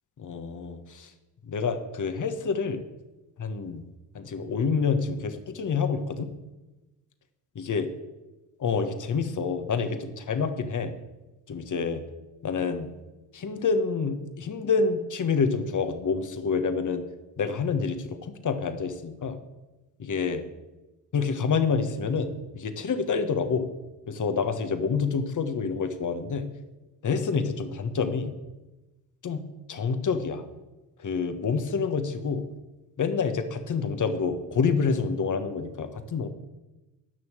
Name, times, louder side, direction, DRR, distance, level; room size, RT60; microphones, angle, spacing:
voice 1, 0.2-1.1 1.4-2.8 3.4-3.8 4.1-6.3 7.5-7.9 8.6-10.9 11.5-12.0 12.4-12.9 13.3-17.0 17.4-19.4 20.0-20.4 21.1-23.7 24.1-26.5 27.0-28.3 29.2-29.4 29.7-30.4 31.0-32.5 33.0-36.3, left 5 dB, 45° left, 9 dB, 1.5 m, -27 dB
11.0 x 6.3 x 7.5 m, 1.1 s
supercardioid pair, 55°, 42 cm